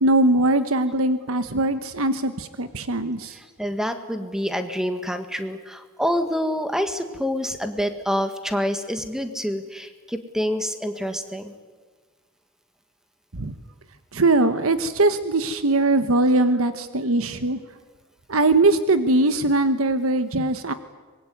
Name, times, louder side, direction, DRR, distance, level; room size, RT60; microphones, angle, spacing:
voice 1, 0.0-3.4 13.3-13.5 14.1-17.6 18.3-20.7, right 2 dB, 80° right, 10 dB, 1.3 m, -21 dB
voice 2, 3.6-11.5, equal, 5° right, 8 dB, 1.9 m, -27 dB
25.0 x 22.0 x 9.5 m, 1.4 s
head